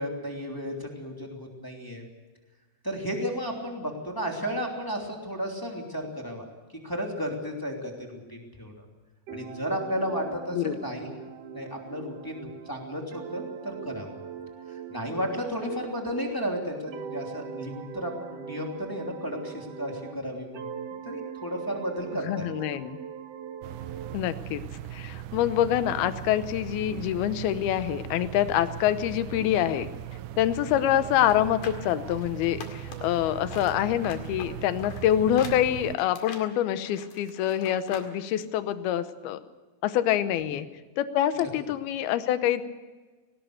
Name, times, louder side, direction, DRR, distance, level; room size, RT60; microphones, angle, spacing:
voice 1, 0.0-2.0 2.8-6.4 6.8-8.8 9.3-11.1 11.5-14.2 14.7-20.7 21.0-22.5 40.4-40.6 41.4-41.5, equal, 5° left, 0 dB, 2.3 m, -33 dB
sound 1, 9.3-16.5 16.9-20.2 20.5-24.2, right 7 dB, 60° right, 1.8 m, -41 dB
voice 2, 22.2-23.0 24.1-24.6 24.9-29.9 30.4-39.4 39.8-40.7 41.0-42.6, left 11 dB, 80° left, 12 dB, 2.8 m, -26 dB
sound 2, 23.6-36.0, right 12 dB, 85° right, 1.7 m, -39 dB
sound 3, 31.2-33.2 33.5-38.1 38.4-38.5, left 6 dB, 60° left, 3.5 m, -43 dB
18.5 x 18.5 x 8.1 m, 1.3 s
omnidirectional pair, 4.4 m